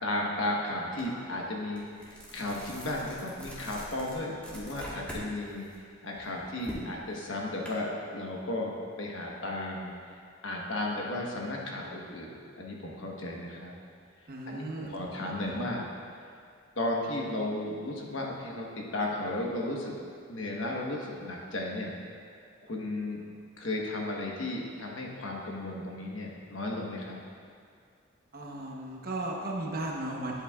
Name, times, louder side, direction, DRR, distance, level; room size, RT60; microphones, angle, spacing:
voice 1, 0.0-5.7 6.0-9.9 10.4-13.7 14.5-15.9 16.8-19.9 20.3-21.9 22.6-23.2 23.6-27.2, left 1 dB, 70° left, -1 dB, 1.2 m, -34 dB
sound 1, 1.0-1.1 1.5-5.3 5.6-7.7, equal, 5° left, 1.4 m, -43 dB
voice 2, 14.3-15.7 28.3-30.4, right 2 dB, 50° right, -1 dB, 1.0 m, -36 dB
11.0 x 7.9 x 2.4 m, 2.3 s
head